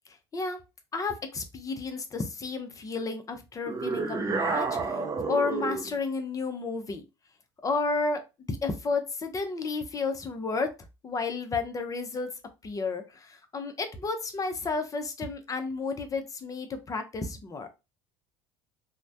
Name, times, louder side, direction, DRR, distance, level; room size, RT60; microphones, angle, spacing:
voice 1, 0.9-7.0 7.6-8.2 8.5-10.7 11.0-12.3 12.6-17.8, left 4 dB, 20° left, 7 dB, 0.6 m, -32 dB
sound 1, 3.6-6.0, right 4 dB, 20° right, 0.5 m, -30 dB
3.1 x 2.1 x 2.6 m, 0.26 s
figure-of-eight pair, 65°, 15 cm